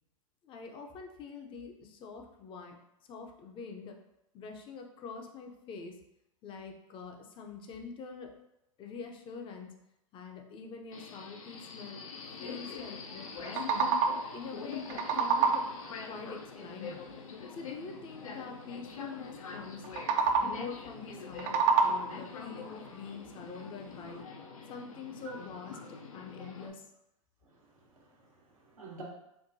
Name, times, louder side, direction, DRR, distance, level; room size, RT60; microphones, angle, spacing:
voice 1, 0.4-2.8 3.1-4.0 4.3-5.9 6.4-8.3 8.8-9.7 10.1-12.0 12.4-13.9 14.3-15.7 16.0-17.0 17.5-19.8 20.4-24.2 24.7-25.7 26.1-26.8, left 5 dB, 30° left, 3 dB, 0.5 m, -45 dB
Subway metro underground, 10.9-26.7, left 5 dB, 80° left, 0.5 m, -44 dB
sound 1, 13.3-14.4 14.7-15.9 19.8-20.7 21.2-22.3, right 5 dB, 45° right, 0.4 m, -28 dB
voice 2, 27.4-29.0, right 3 dB, 85° right, -3 dB, 1.1 m, -51 dB
4.5 x 2.2 x 2.6 m, 0.85 s
hypercardioid pair, 105°, 17 cm